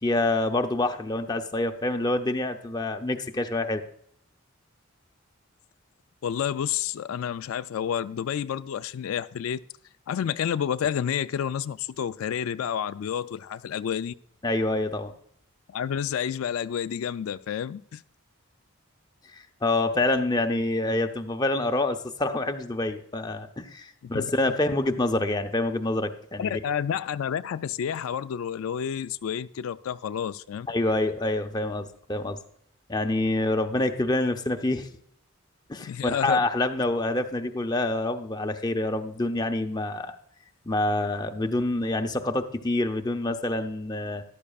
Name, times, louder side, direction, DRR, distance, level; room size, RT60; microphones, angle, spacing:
voice 1, 0.0-3.8 14.4-15.1 19.3-26.6 30.7-32.4 32.9-34.9 35.7-40.2 40.7-44.2, left 2 dB, 20° left, 0.6 m, -27 dB
voice 2, 6.2-9.6 10.1-14.1 15.7-18.0 24.1-24.3 26.4-30.7 35.8-36.4, left 8 dB, 80° left, 0.3 m, -30 dB
13.5 x 11.5 x 2.4 m
head